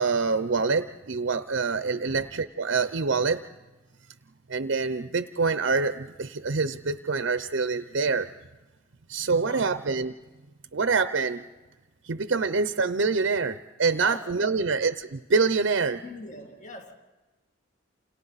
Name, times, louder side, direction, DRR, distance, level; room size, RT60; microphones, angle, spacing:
voice 1, 0.0-3.5 4.5-8.3 9.1-10.1 10.7-11.4 12.0-16.0, right 4 dB, 65° right, 11 dB, 0.6 m, -26 dB
voice 2, 9.4-9.8 13.9-14.7 16.0-17.0, left 2 dB, 40° left, 3 dB, 2.1 m, -42 dB
29.0 x 28.0 x 4.1 m, 1.2 s
head